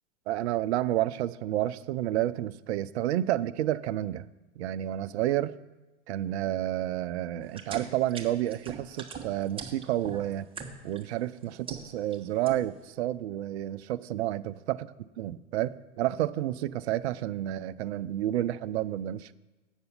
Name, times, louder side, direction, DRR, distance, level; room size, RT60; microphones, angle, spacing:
voice 1, 0.3-4.3 4.6-5.5 6.1-10.5 10.8-14.9 15.2-19.3, right 13 dB, 65° right, 13 dB, 0.6 m, -30 dB
sound 1, 7.5-11.0 11.4-12.2 12.5-12.9, right 5 dB, 15° right, 1.4 m, -40 dB
8.1 x 6.8 x 8.1 m, 1.2 s
hypercardioid pair, 115°, 36 cm